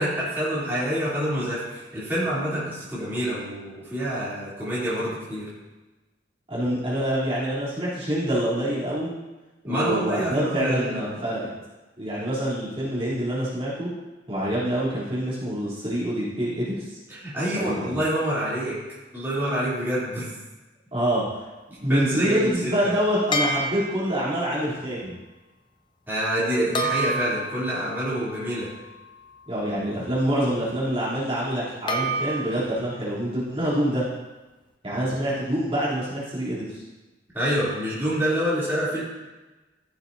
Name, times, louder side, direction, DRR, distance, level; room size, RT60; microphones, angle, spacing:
voice 1, 0.0-5.5 9.7-11.1 17.1-18.8 19.1-20.3 21.9-22.7 26.1-28.7 37.3-39.0, equal, 10° right, -11 dB, 3.3 m, -27 dB
voice 2, 6.5-9.1 9.6-11.5 12.0-13.9 14.3-17.0 17.5-17.9 20.9-21.2 21.8-25.1 29.5-34.0 34.8-36.8, equal, 30° right, -10 dB, 3.4 m, -26 dB
sound 1, 23.3-24.3 26.7-29.9 31.9-32.8, right 1 dB, 25° left, 0.8 m, -30 dB
14.5 x 7.2 x 2.8 m, 1.1 s
head